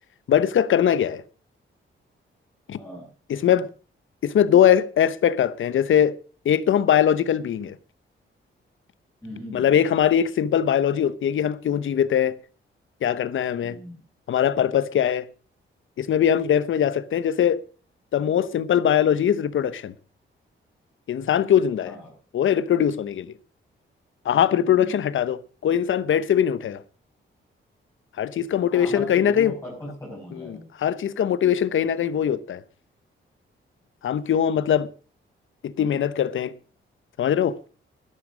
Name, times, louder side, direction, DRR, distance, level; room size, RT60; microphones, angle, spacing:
voice 1, 0.3-1.2 2.7-2.8 3.3-3.7 4.2-6.1 6.4-7.8 9.5-12.4 13.0-13.8 14.3-15.3 16.0-17.6 18.1-19.9 21.1-21.9 22.3-23.3 24.2-26.8 28.2-29.5 30.8-32.6 34.0-34.9 35.6-36.5 37.2-37.5, left 9 dB, 75° left, 1.0 m, -21 dB
voice 2, 2.8-3.1 9.2-9.8 13.6-14.0 21.8-22.1 24.8-25.0 28.7-30.7, equal, 15° left, 7.0 m, -38 dB
12.0 x 11.5 x 6.2 m
wide cardioid pair, 125°, 21 cm